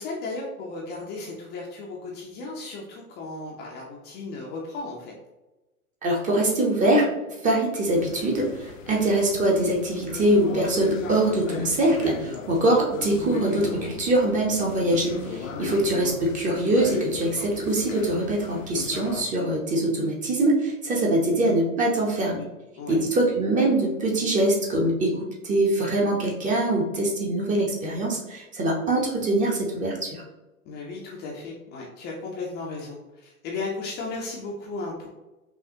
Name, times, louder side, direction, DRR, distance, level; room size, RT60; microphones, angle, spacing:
voice 1, 0.0-5.1 15.6-15.8 21.1-21.4 22.8-23.0 30.6-35.1, left 3 dB, 25° left, -2 dB, 0.6 m, -35 dB
voice 2, 6.0-7.1 7.4-22.4 22.9-30.2, right 1 dB, 15° right, -2 dB, 0.8 m, -23 dB
sound 1, 7.9-19.2, left 5 dB, 60° left, 0.7 m, -36 dB
5.6 x 2.3 x 2.7 m, 1.1 s
figure-of-eight pair, 100°, 44 cm